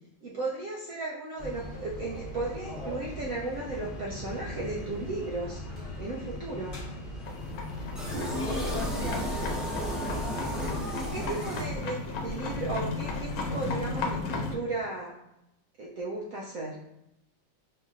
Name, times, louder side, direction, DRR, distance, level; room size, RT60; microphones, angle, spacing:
voice 1, 0.2-5.6 6.0-6.8 9.4-9.5 11.0-15.1 15.8-16.8, right 2 dB, 70° right, -3 dB, 0.8 m, -35 dB
sound 1, 1.4-10.8, left 1 dB, 35° left, 0.9 m, -40 dB
sound 2, 7.2-14.5, left 3 dB, 90° left, 1.3 m, -35 dB
sound 3, 7.9-12.2, equal, ahead, 0.5 m, -33 dB
voice 2, 8.3-10.4, left 2 dB, 65° left, -2 dB, 0.9 m, -39 dB
5.4 x 2.8 x 2.4 m, 0.86 s
omnidirectional pair, 2.0 m